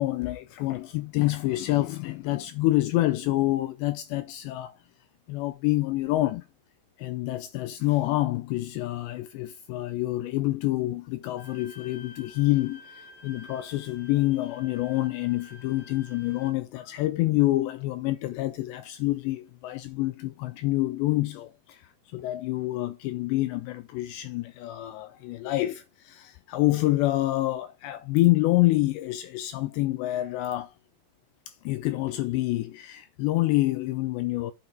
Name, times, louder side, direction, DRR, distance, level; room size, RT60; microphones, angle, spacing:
voice 1, 0.0-4.8 5.3-6.5 7.0-30.7 31.5-34.5, left 17 dB, 90° left, 2.5 m, -27 dB
Bowed string instrument, 11.4-16.5, left 3 dB, 70° left, 5.4 m, -50 dB
8.9 x 6.0 x 4.4 m
omnidirectional pair, 5.6 m